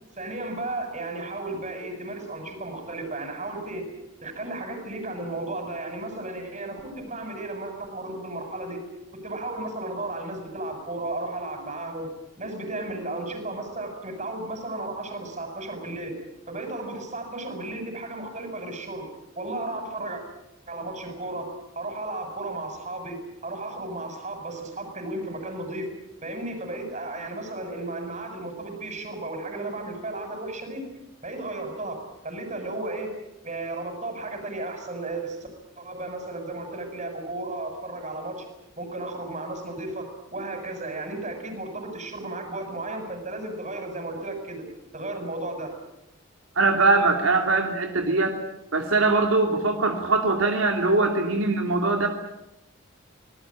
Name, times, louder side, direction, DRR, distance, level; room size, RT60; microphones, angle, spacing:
voice 1, 0.2-3.9 4.2-8.8 9.1-12.1 12.4-16.2 16.5-19.1 19.4-20.2 20.7-21.5 21.8-25.9 26.2-30.9 31.2-33.1 33.4-35.4 35.8-38.5 38.8-44.7 44.9-45.7, right 2 dB, 35° right, 5 dB, 7.0 m, -34 dB
voice 2, 46.6-48.4 48.7-52.1, right 3 dB, 80° right, 3 dB, 2.8 m, -22 dB
26.0 x 20.0 x 8.9 m, 0.92 s
head